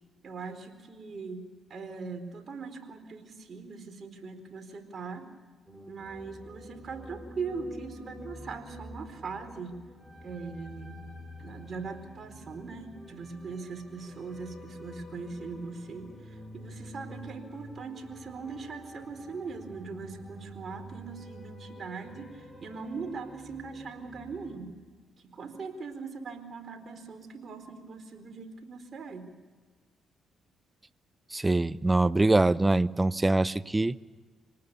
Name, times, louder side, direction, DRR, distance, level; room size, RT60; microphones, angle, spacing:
voice 1, 0.2-5.3 5.9-9.8 10.2-11.0 11.4-16.1 16.5-22.3 22.6-24.7 25.3-29.3, right 4 dB, 50° right, 6 dB, 4.3 m, -40 dB
sound 1, 5.7-24.6, equal, ahead, 6.7 m, -48 dB
voice 2, 31.3-34.0, right 2 dB, 20° right, 17 dB, 0.7 m, -24 dB
27.0 x 19.0 x 7.0 m, 1.4 s
supercardioid pair, 65°, 0 cm